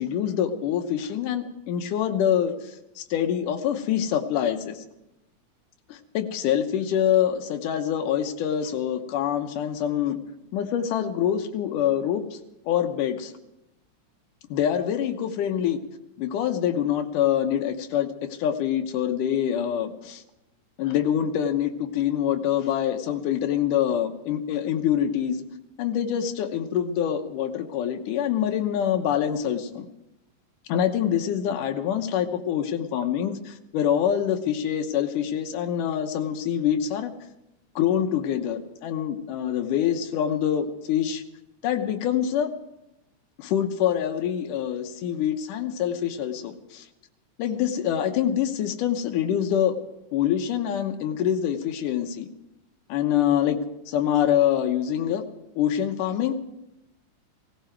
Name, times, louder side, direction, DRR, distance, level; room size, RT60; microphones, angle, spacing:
voice 1, 0.0-4.8 5.9-10.2 10.5-12.2 12.7-13.3 14.5-15.8 16.2-20.2 20.8-25.4 25.8-29.9 30.7-37.1 37.8-41.2 41.6-42.5 43.4-46.9 47.4-49.8 50.1-52.3 52.9-53.6 53.9-55.3 55.6-56.3, left 9 dB, 85° left, 6 dB, 2.6 m, -25 dB
17.5 x 17.0 x 4.6 m, 0.92 s
omnidirectional pair, 3.6 m